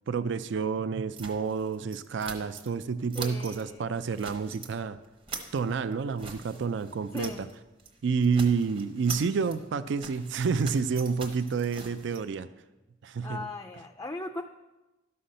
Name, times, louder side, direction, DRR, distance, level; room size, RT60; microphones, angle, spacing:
voice 1, 0.1-5.0 5.5-7.5 8.0-12.5 13.0-13.5, right 5 dB, 60° right, 13 dB, 0.4 m, -29 dB
sound 1, 1.2-2.8 3.1-3.6 4.0-4.7 5.0-7.5 7.8-12.2, right 4 dB, 30° right, 1.1 m, -43 dB
voice 2, 3.1-3.9 7.1-7.4 13.2-14.4, left 2 dB, 15° left, 6 dB, 0.3 m, -38 dB
12.0 x 5.7 x 6.4 m, 1.1 s
head